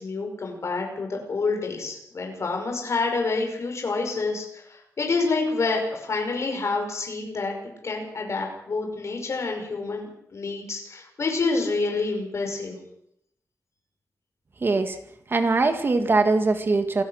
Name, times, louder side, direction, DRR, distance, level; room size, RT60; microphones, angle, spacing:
voice 1, 0.0-7.5 7.8-12.8, left 3 dB, 55° left, 2 dB, 5.6 m, -28 dB
voice 2, 14.6-15.0 15.3-17.0, right 3 dB, 40° right, 7 dB, 1.9 m, -21 dB
27.5 x 15.5 x 6.5 m, 0.72 s
wide cardioid pair, 180°, 6 cm